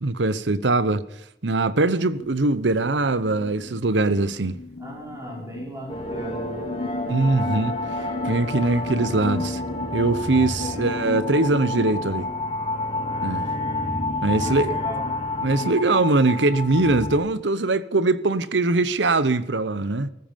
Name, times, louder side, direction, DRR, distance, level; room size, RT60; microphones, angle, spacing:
voice 1, 0.0-1.0 1.4-4.6 7.1-7.8 8.2-9.6 9.9-12.3 13.2-13.4 14.2-14.8 15.4-20.1, right 2 dB, 90° right, 1.0 m, -22 dB
sound 1, 2.1-16.0, left 3 dB, 60° left, 1.2 m, -36 dB
voice 2, 4.8-6.6 10.6-11.0 14.0-15.2, equal, 15° right, 5.5 m, -38 dB
sound 2, 5.9-17.2, left 2 dB, 30° left, 4.0 m, -29 dB
18.5 x 14.5 x 5.3 m
head